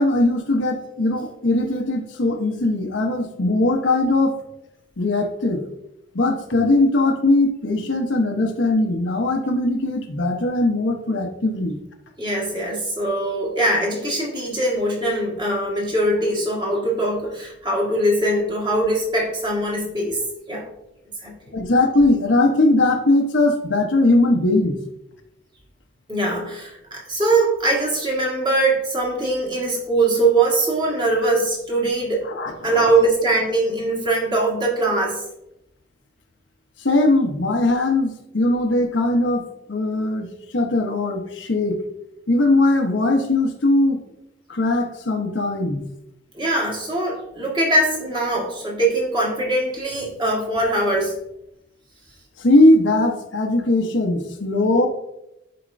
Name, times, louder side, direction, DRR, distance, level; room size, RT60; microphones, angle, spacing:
voice 1, 0.0-4.4 5.0-5.6 6.1-11.8 21.5-24.7 32.2-32.9 36.8-39.4 39.7-40.3 40.5-41.8 42.3-44.0 44.5-45.8 52.4-54.9, left 2 dB, 80° left, 3 dB, 0.9 m, -19 dB
voice 2, 12.2-20.2 20.5-20.7 21.2-21.5 26.1-32.3 32.6-35.2 46.3-51.1, right 2 dB, 25° right, -2 dB, 1.6 m, -22 dB
10.5 x 4.3 x 2.6 m, 0.88 s
head